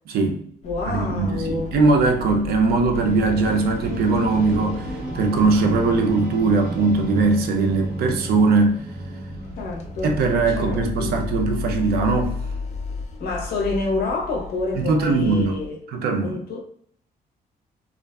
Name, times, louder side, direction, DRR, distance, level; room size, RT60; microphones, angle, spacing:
voice 1, 0.1-0.5 0.8-8.8 10.0-12.3 14.8-15.6 15.9-16.4, right 3 dB, 75° right, 0.5 m, -20 dB
voice 2, 0.6-1.7 9.6-10.2 10.5-11.1 13.2-15.8 16.2-16.7, left 3 dB, 70° left, 0.7 m, -28 dB
sound 1, 0.6-7.4 7.7-8.0 8.3-8.5 8.9-15.7, left 3 dB, 45° left, 0.4 m, -34 dB
sound 2, 2.9-11.5, right 1 dB, 10° right, 0.9 m, -33 dB
2.5 x 2.4 x 2.2 m
cardioid pair, 145°, 16 cm